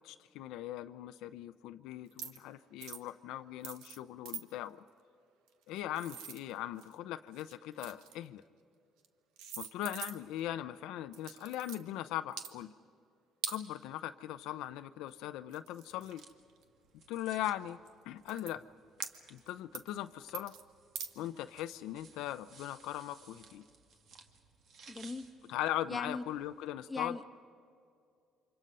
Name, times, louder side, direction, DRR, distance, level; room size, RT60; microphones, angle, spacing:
voice 1, 0.0-4.8 5.7-8.4 9.6-12.7 13.5-16.2 17.1-17.8 18.0-18.6 19.3-20.6 21.2-23.7 25.5-27.2, left 13 dB, 85° left, 10 dB, 0.6 m, -39 dB
sound 1, 2.1-2.4 2.8-3.1 3.6-4.0 4.2-4.4 5.5-6.9 7.3-8.3 9.0-9.1 9.4-10.4 11.1-11.8 12.3-12.5 13.4-13.6 15.1-15.2 15.5-16.6 17.3-17.5 17.9-18.0 18.2-18.5 19.0-19.5 19.7-20.0 20.3-20.6 20.9-21.1, right 8 dB, 90° right, 1.3 m, -43 dB
sound 2, 15.9-26.7, right 4 dB, 60° right, 2.1 m, -60 dB
voice 2, 24.9-25.3 25.9-26.2 26.9-27.3, left 3 dB, 15° left, 5 dB, 1.3 m, -39 dB
29.0 x 26.0 x 5.5 m, 2.4 s
cardioid pair, 120°, 0 cm